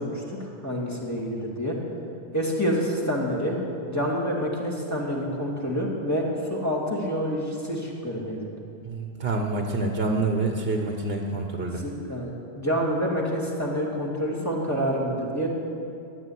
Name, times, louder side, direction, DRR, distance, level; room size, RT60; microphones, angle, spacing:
voice 1, 0.0-1.8 2.3-3.6 3.9-8.5 11.7-15.5, equal, 15° left, -4 dB, 2.5 m, -28 dB
voice 2, 8.8-11.8, right 2 dB, 60° right, 3 dB, 1.2 m, -27 dB
14.0 x 8.4 x 9.9 m, 2.6 s
omnidirectional pair, 1.1 m